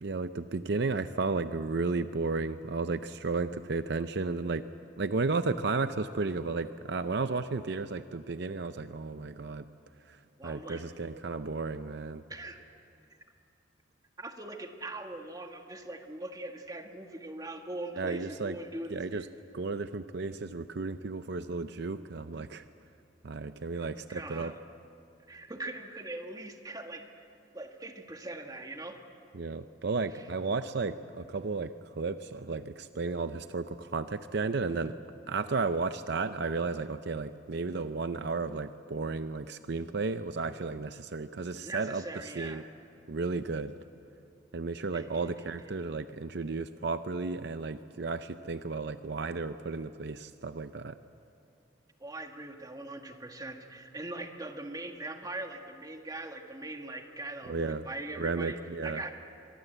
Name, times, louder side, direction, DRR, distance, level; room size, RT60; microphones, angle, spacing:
voice 1, 0.0-4.6 5.0-9.7 10.1-12.2 18.0-18.6 18.9-19.3 19.5-22.6 23.2-24.5 29.3-35.0 35.3-42.0 42.4-42.6 43.1-43.7 44.5-51.0 57.4-57.9 58.2-59.0, right 3 dB, 60° right, 11 dB, 0.6 m, -33 dB
voice 2, 10.4-11.1 12.3-12.6 14.2-19.2 23.7-24.6 25.3-27.2 27.5-29.0 30.2-30.3 41.6-42.6 44.9-45.3 45.6-45.7 52.0-58.6 58.8-59.1, right 2 dB, 20° right, 4 dB, 1.7 m, -41 dB
24.5 x 22.5 x 8.1 m, 2.6 s
head